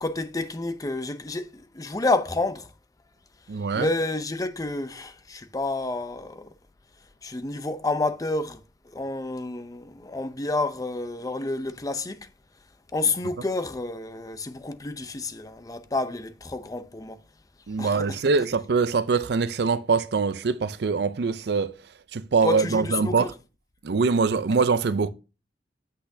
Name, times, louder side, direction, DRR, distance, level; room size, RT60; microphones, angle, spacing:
voice 1, 0.0-2.7 3.7-6.5 7.2-8.6 8.9-12.3 12.9-17.2 17.8-18.2 22.4-23.3, left 2 dB, 20° left, 0.5 m, -29 dB
voice 2, 3.5-3.9 17.7-21.7 22.1-23.3 23.8-25.1, right 4 dB, 65° right, 0.5 m, -23 dB
8.1 x 6.1 x 2.7 m
head